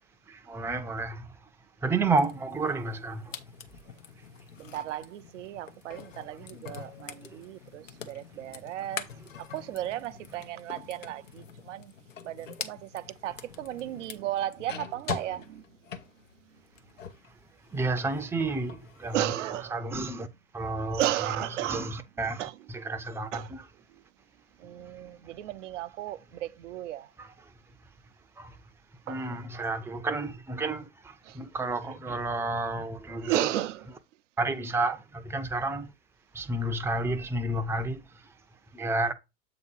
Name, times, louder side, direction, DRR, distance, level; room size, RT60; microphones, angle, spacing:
voice 1, 0.3-1.3 1.8-3.3 17.7-19.2 19.7-20.3 20.5-21.0 21.6-23.6 28.4-28.6 29.1-33.5 34.4-35.9 36.3-38.0 38.7-39.1, right 2 dB, 5° right, 0.6 m, -31 dB
sound 1, 2.2-17.3 17.6-19.3, left 7 dB, 80° left, 1.0 m, -44 dB
voice 2, 4.6-9.1 9.4-11.9 12.2-15.7 16.4-16.6 19.1-19.8 20.9-22.0 22.4-22.7 23.3-23.6 23.9-24.0 24.6-27.1 29.1-29.4 31.2-31.4 31.8-32.2 33.2-33.9, right 13 dB, 70° right, 0.6 m, -34 dB
7.8 x 2.9 x 5.3 m
hypercardioid pair, 90°, 38 cm